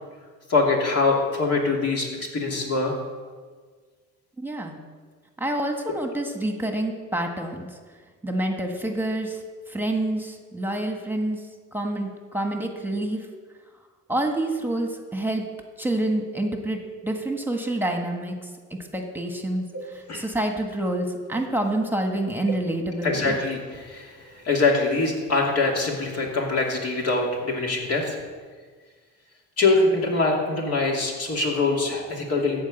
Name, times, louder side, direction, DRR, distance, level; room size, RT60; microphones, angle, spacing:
voice 1, 0.5-2.1 2.3-2.9 19.7-19.8 20.1-20.2 22.5-22.6 23.0-28.2 29.6-32.6, left 3 dB, 55° left, -1 dB, 2.9 m, -23 dB
voice 2, 4.4-4.8 5.4-7.8 8.2-11.4 11.7-13.3 14.1-15.4 15.8-23.4, right 1 dB, 5° right, 3 dB, 1.5 m, -28 dB
14.0 x 4.8 x 8.9 m, 1.5 s
cardioid pair, 90°, 30 cm